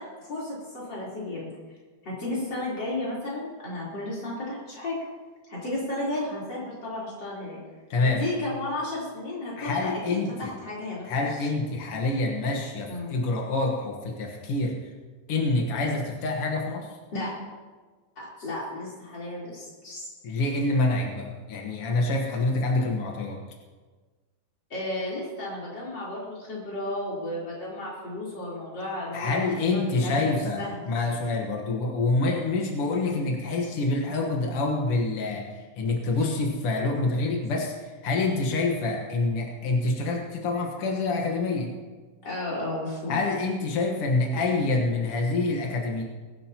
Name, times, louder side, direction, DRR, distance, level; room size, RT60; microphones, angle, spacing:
voice 1, 0.0-1.5 2.0-5.0 5.5-7.6 8.2-11.5 12.9-13.1 17.1-17.3 18.2-20.1 24.7-29.4 29.7-30.8 32.5-32.8 36.2-36.3 42.2-43.2, left 1 dB, 25° left, -6 dB, 4.2 m, -33 dB
voice 2, 7.9-8.2 9.6-10.5 11.1-14.8 15.3-17.0 20.2-23.4 29.1-41.7 43.1-46.0, left 3 dB, 75° left, 0 dB, 1.3 m, -26 dB
21.5 x 11.5 x 3.0 m, 1.4 s
omnidirectional pair, 4.8 m